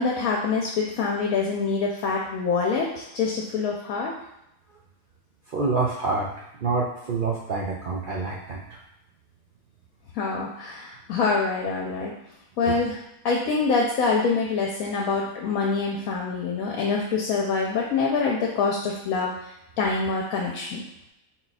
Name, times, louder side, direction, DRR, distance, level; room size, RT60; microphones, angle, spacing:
voice 1, 0.0-4.1 10.1-12.1 12.6-13.0 13.2-19.3 19.8-20.8, left 4 dB, 75° left, -2 dB, 1.0 m, -25 dB
voice 2, 5.5-6.3 6.6-8.8 12.6-12.8, right 4 dB, 80° right, -3 dB, 0.4 m, -27 dB
3.9 x 2.3 x 4.0 m, 0.83 s
omnidirectional pair, 1.5 m